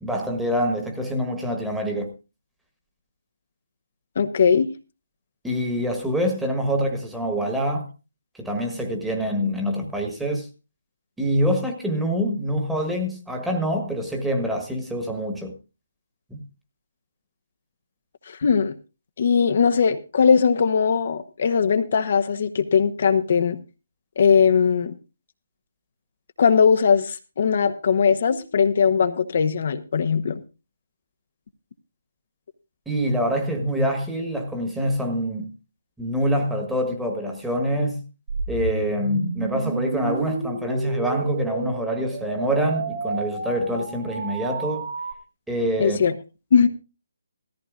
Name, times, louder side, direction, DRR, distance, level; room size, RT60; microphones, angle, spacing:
voice 1, 0.0-2.1 5.4-7.9 8.4-10.5 11.2-15.5 32.8-35.5 36.0-38.0 38.5-44.9 45.5-46.0, equal, 5° right, 1.5 m, -25 dB
voice 2, 4.2-4.7 18.3-18.7 19.2-23.6 24.2-24.9 26.4-30.4 45.8-46.1 46.5-46.7, left 6 dB, 55° left, 0.9 m, -19 dB
sound 1, 38.3-45.1, right 4 dB, 60° right, 1.9 m, -30 dB
17.0 x 14.0 x 2.5 m
figure-of-eight pair, 150°, 0 cm